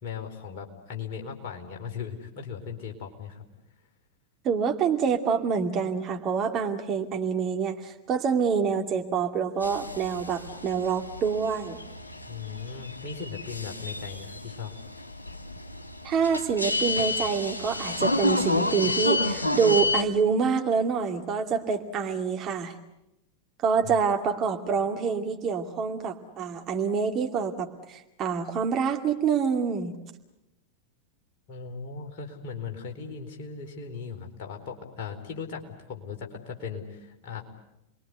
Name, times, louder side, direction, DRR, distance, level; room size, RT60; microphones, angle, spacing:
voice 1, 0.0-3.4 12.3-14.7 23.8-24.0 31.5-37.4, left 6 dB, 45° left, 2 dB, 4.4 m, -38 dB
voice 2, 4.4-11.8 16.0-22.7 23.6-29.9, right 6 dB, 30° right, 3 dB, 2.5 m, -26 dB
sound 1, 9.6-20.0, left 2 dB, 85° left, 2.5 m, -30 dB
29.5 x 22.0 x 8.1 m, 0.90 s
figure-of-eight pair, 90°, 0 cm